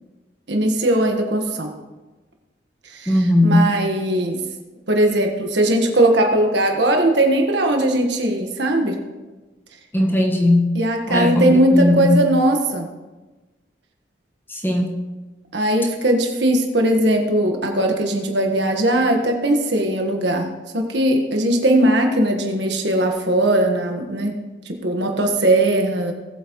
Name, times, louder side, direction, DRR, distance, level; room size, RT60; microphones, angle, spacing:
voice 1, 0.5-1.7 2.9-3.1 3.4-4.4 4.9-9.0 10.7-12.9 15.5-24.4 24.6-26.1, right 1 dB, 70° right, 3 dB, 1.5 m, -19 dB
voice 2, 3.1-3.7 9.9-10.6 11.1-12.2 14.5-14.9, left 1 dB, 10° left, -2 dB, 1.5 m, -18 dB
19.0 x 8.0 x 3.1 m, 1.2 s
head